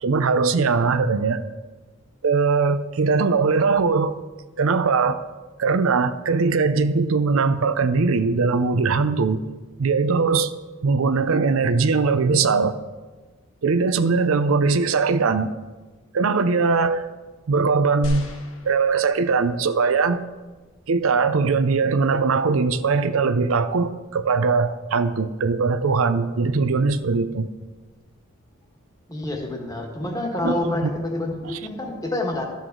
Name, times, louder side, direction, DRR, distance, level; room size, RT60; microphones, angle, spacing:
voice 1, 0.0-1.4 2.2-4.1 4.6-5.2 5.6-9.4 9.8-10.5 10.8-12.8 13.6-15.5 16.1-17.1 17.5-18.3 18.6-20.2 20.9-27.5 30.4-30.6 30.8-30.9 31.4-31.6, right 4 dB, 85° right, 11 dB, 0.5 m, -20 dB
sound 1, 18.0-19.5 20.3-20.4, equal, 85° left, 1.2 m, -34 dB
voice 2, 29.1-32.5, left 1 dB, 15° left, 1 dB, 1.3 m, -27 dB
12.5 x 7.2 x 3.8 m, 1.3 s
head